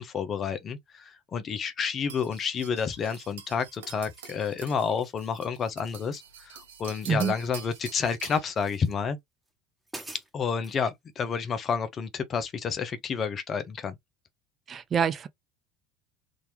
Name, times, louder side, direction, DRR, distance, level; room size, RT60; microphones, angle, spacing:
voice 1, 0.0-9.2 10.3-13.9, left 6 dB, 40° left, 0.9 m, -30 dB
sound 1, 2.1-8.5, right 8 dB, 85° right, 0.9 m, -46 dB
sound 2, 3.2-3.5 4.0-4.4 4.8-5.2 5.8-6.5 6.8-8.0 8.5-8.9 9.5-9.6 9.8-10.8, right 2 dB, 10° right, 1.5 m, -48 dB
voice 2, 14.7-15.3, right 7 dB, 35° right, 0.7 m, -26 dB
3.8 x 2.8 x 3.3 m
hypercardioid pair, 80°, 0 cm